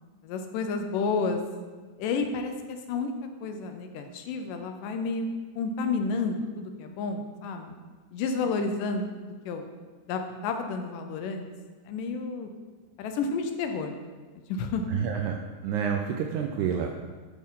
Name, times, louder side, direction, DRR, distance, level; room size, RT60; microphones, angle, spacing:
voice 1, 0.2-1.4 2.0-3.1 3.4-5.3 5.6-7.8 8.1-9.1 9.5-9.7 10.1-11.5 11.9-12.5 13.0-13.9 14.5-15.0, left 4 dB, 80° left, 5 dB, 2.2 m, -30 dB
voice 2, 14.9-15.4 15.6-16.9, right 7 dB, 80° right, 3 dB, 1.8 m, -28 dB
10.5 x 5.7 x 3.7 m, 1.4 s
omnidirectional pair, 4.0 m